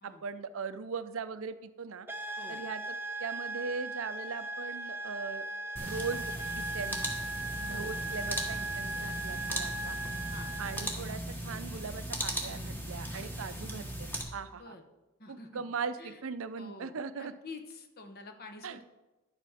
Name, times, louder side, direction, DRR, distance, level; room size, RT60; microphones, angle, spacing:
voice 1, 0.0-2.1 2.5-2.8 3.2-5.5 5.8-7.0 7.7-10.0 10.6-14.8 15.3-17.3 18.6-18.8, right 5 dB, 65° right, 13 dB, 0.5 m, -39 dB
sound 1, 2.1-11.0, right 2 dB, 10° right, 0.6 m, -38 dB
sound 2, 5.8-14.2, equal, 10° left, 1.4 m, -38 dB
voice 2, 14.5-14.8 15.2-15.6 16.0-16.2 16.6-18.9, left 3 dB, 45° left, 6 dB, 1.1 m, -48 dB
11.0 x 7.6 x 4.9 m, 1.1 s
head